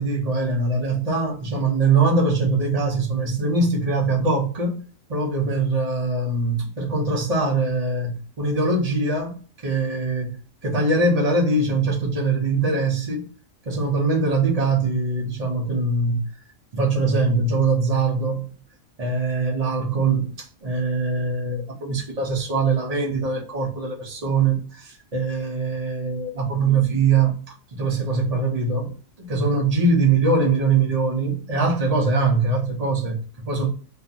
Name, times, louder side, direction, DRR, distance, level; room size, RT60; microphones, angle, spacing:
voice 1, 0.0-4.7 5.1-9.3 9.6-10.3 10.6-13.2 13.6-16.3 16.7-18.5 19.0-33.7, right 3 dB, 40° right, 0.6 m, -22 dB
2.6 x 2.4 x 2.5 m
omnidirectional pair, 1.4 m